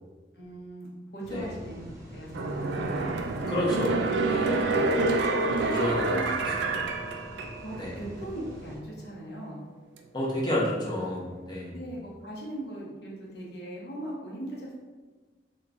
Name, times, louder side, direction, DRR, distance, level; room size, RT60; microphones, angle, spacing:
voice 1, 0.3-3.1 4.7-5.3 6.1-6.5 7.6-9.6 11.7-14.7, right 1 dB, 65° left, -4 dB, 0.9 m, -39 dB
sound 1, 1.2-8.8, equal, 20° right, 0.5 m, -46 dB
sound 2, 2.3-7.9 8.2-8.3, right 3 dB, 80° right, 0.3 m, -27 dB
voice 2, 3.5-4.8 5.6-6.3 6.8-6.9 7.8-8.0 10.1-11.8, left 1 dB, 25° left, -5 dB, 0.7 m, -30 dB
2.9 x 2.3 x 3.7 m, 1.3 s
head